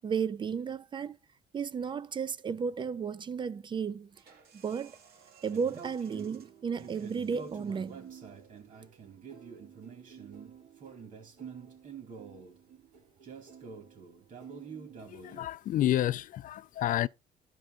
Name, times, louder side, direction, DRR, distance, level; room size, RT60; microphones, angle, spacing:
voice 1, 0.0-1.2 1.5-4.1 4.5-5.0 5.4-8.1, right 6 dB, 30° right, 0.4 m, -33 dB
sound 1, 4.1-9.6, right 6 dB, 70° right, 1.7 m, -61 dB
sound 2, 5.5-15.5, right 6 dB, 50° right, 2.3 m, -47 dB
voice 2, 15.0-17.1, left 13 dB, 50° left, 0.4 m, -30 dB
12.0 x 4.6 x 3.8 m
cardioid pair, 110°, 17 cm